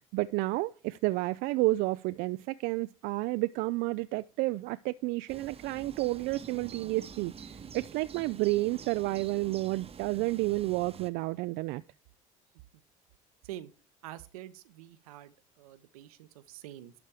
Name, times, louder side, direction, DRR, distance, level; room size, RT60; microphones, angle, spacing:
voice 1, 0.0-11.8, right 20 dB, 65° right, 0.4 m, -31 dB
sound 1, 5.3-11.1, right 6 dB, 30° right, 0.9 m, -47 dB
voice 2, 14.0-16.9, right 13 dB, 80° right, 0.8 m, -46 dB
12.0 x 4.3 x 4.9 m
hypercardioid pair, 65°, 18 cm